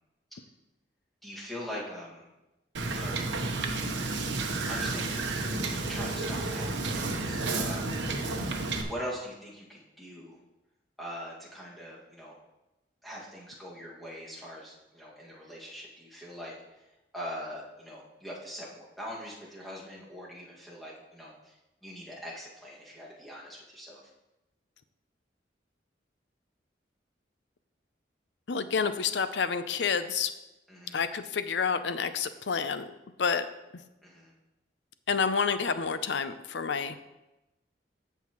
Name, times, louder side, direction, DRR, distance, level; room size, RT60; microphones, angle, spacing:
voice 1, 1.2-2.3 2.9-3.1 4.7-5.5 5.9-8.0 8.8-10.4 11.0-12.3 13.0-16.5 17.1-21.5 21.8-24.0 30.7-31.0 34.0-34.3, equal, ahead, -6 dB, 2.0 m, -42 dB
Wind / Boat Water vehicle, 2.7-8.8, right 3 dB, 85° right, 1.0 m, -31 dB
voice 2, 28.5-30.3 30.9-32.9 33.2-33.5 35.1-37.0, left 6 dB, 70° left, 11 dB, 0.6 m, -29 dB
15.5 x 5.6 x 3.1 m, 0.99 s
head